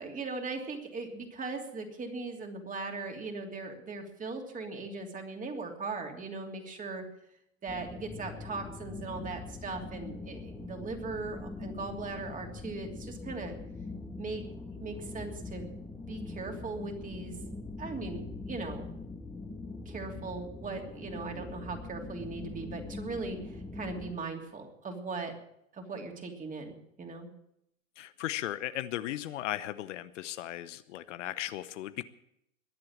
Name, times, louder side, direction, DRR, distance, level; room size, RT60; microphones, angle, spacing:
voice 1, 0.0-7.0 7.6-13.6 14.2-14.4 14.8-17.4 17.8-18.9 19.8-25.3 25.7-27.3, right 3 dB, 20° right, 3 dB, 3.0 m, -39 dB
sound 1, 7.7-24.1, left 3 dB, 5° left, 1.7 m, -42 dB
voice 2, 28.0-32.0, left 13 dB, 65° left, 13 dB, 0.9 m, -36 dB
21.5 x 7.7 x 7.4 m, 0.76 s
hypercardioid pair, 105°, 40 cm